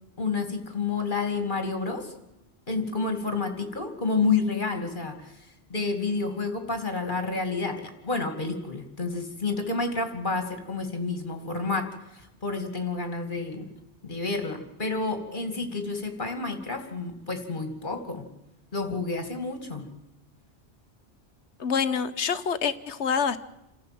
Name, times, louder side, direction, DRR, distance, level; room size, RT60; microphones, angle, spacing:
voice 1, 0.2-2.1 2.7-13.7 14.0-18.3 18.7-19.8, left 4 dB, 45° left, 6 dB, 2.6 m, -30 dB
voice 2, 21.6-23.4, left 6 dB, 75° left, 12 dB, 1.2 m, -26 dB
28.0 x 14.5 x 7.7 m, 0.91 s
omnidirectional pair, 1.2 m